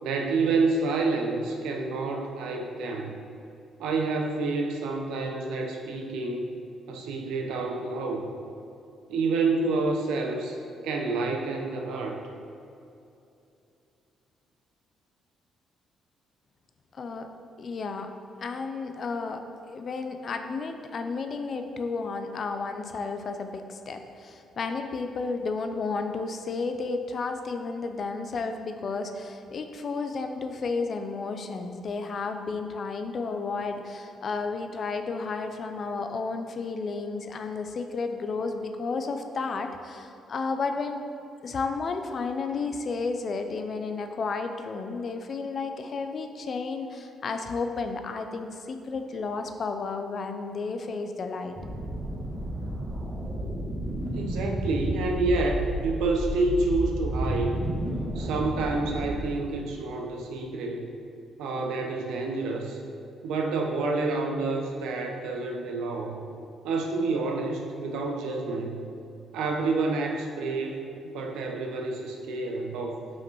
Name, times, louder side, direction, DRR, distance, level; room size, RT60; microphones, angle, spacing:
voice 1, 0.0-3.1 3.8-6.5 6.9-8.2 9.1-10.6 10.8-12.2 54.1-57.6 58.1-60.9 61.4-62.8 63.2-66.2 66.6-68.8 69.3-73.0, right 3 dB, 90° right, 1 dB, 0.8 m, -28 dB
voice 2, 16.9-17.3 17.6-18.1 18.4-41.0 41.4-51.6, left 4 dB, 50° left, 6 dB, 0.6 m, -32 dB
sound 1, 51.6-59.2, right 1 dB, 20° right, 1.2 m, -31 dB
5.8 x 5.1 x 4.6 m, 2.7 s
cardioid pair, 90°, 0 cm